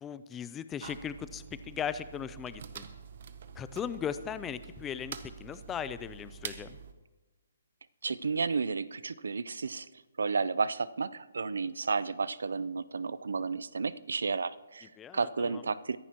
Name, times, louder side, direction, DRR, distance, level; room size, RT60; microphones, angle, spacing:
voice 1, 0.0-2.8 3.6-6.8 15.0-15.6, left 8 dB, 10° left, 14 dB, 0.4 m, -38 dB
sound 1, 0.8-6.9, right 7 dB, 45° right, 0.8 m, -46 dB
voice 2, 8.0-9.9 10.2-16.0, right 4 dB, 85° right, 18 dB, 0.5 m, -32 dB
23.0 x 11.0 x 3.0 m, 1.2 s
hypercardioid pair, 165°, 0 cm